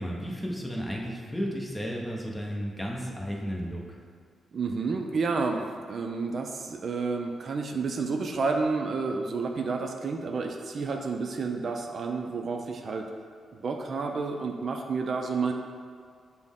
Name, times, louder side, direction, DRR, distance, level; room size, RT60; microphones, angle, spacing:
voice 1, 0.0-4.0, equal, 10° left, -2 dB, 0.7 m, -33 dB
voice 2, 4.5-13.1 13.5-15.5, right 4 dB, 55° right, 3 dB, 0.3 m, -30 dB
5.9 x 2.0 x 3.5 m, 2.1 s
cardioid pair, 90°, 0 cm